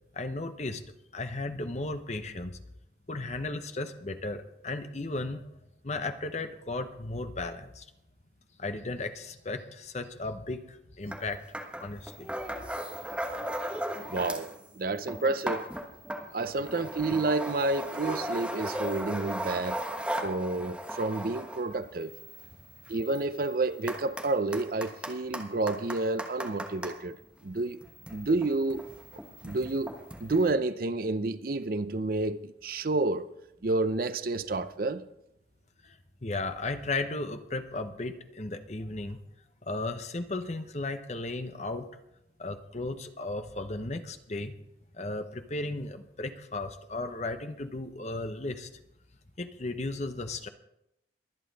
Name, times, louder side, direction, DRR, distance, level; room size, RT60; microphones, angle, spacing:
voice 1, 0.1-0.8 1.1-2.6 3.1-5.5 5.8-7.9 8.6-11.4 11.8-12.3 35.8-39.2 39.6-41.9 42.4-44.6 44.9-48.7 49.4-50.5, left 2 dB, 40° left, 0.9 m, -35 dB
sound 1, 11.1-11.2 11.5-14.6 14.9-26.9 27.7-30.5, equal, 5° right, 1.3 m, -37 dB
voice 2, 14.1-15.7 16.3-19.8 20.2-22.1 22.9-27.8 28.1-28.8 29.4-29.9 30.2-33.3 33.6-35.1, right 2 dB, 50° right, 0.6 m, -30 dB
22.5 x 8.5 x 4.1 m
head